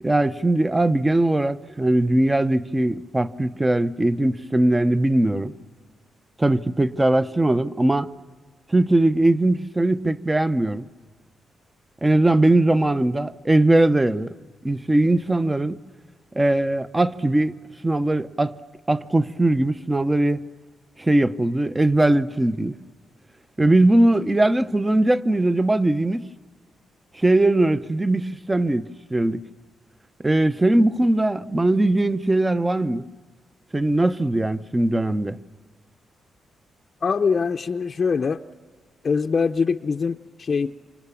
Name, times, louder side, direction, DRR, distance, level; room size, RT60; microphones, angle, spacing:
voice 1, 0.0-5.5 6.4-8.1 8.7-10.9 12.0-14.3 14.6-15.8 16.3-17.6 17.8-18.6 18.9-20.4 21.0-22.8 23.6-26.2 27.1-29.4 30.2-33.0 33.7-35.4, right 1 dB, 15° right, 0.8 m, -20 dB
voice 2, 37.0-38.4 39.0-40.7, left 5 dB, 45° left, 0.7 m, -23 dB
28.0 x 26.5 x 7.2 m
cardioid pair, 85°, 0 cm